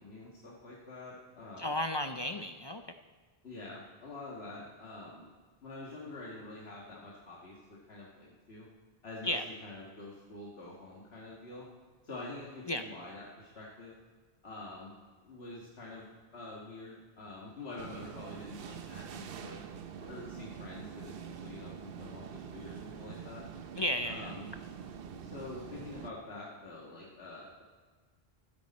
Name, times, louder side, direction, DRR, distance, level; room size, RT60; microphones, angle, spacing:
voice 1, 0.0-1.7 3.4-5.3 5.6-8.7 9.0-11.7 12.0-13.9 14.4-14.9 15.2-19.6 20.0-23.4 24.0-24.5 25.2-27.6, left 2 dB, 85° left, -5 dB, 1.9 m, -46 dB
voice 2, 1.6-2.8 9.2-9.4 12.7-12.8 23.8-24.3, left 1 dB, 35° left, 7 dB, 0.4 m, -33 dB
sound 1, 17.8-26.1, right 7 dB, 70° right, 0.8 m, -45 dB
15.0 x 12.5 x 4.2 m, 1.5 s
omnidirectional pair, 1.0 m